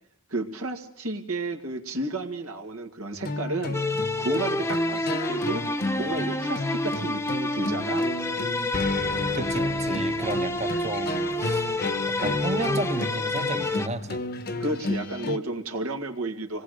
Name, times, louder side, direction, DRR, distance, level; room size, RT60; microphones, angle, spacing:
voice 1, 0.3-3.8 4.2-5.6 6.0-8.1 14.6-16.6, right 2 dB, 75° right, 4 dB, 2.2 m, -32 dB
sound 1, 3.1-15.4, left 2 dB, 45° left, 1.2 m, -32 dB
sound 2, 3.7-13.9, left 2 dB, 10° left, 1.1 m, -28 dB
voice 2, 9.3-11.7 12.1-14.2, right 2 dB, 30° right, 10 dB, 1.2 m, -32 dB
26.0 x 19.5 x 6.7 m, 0.66 s
head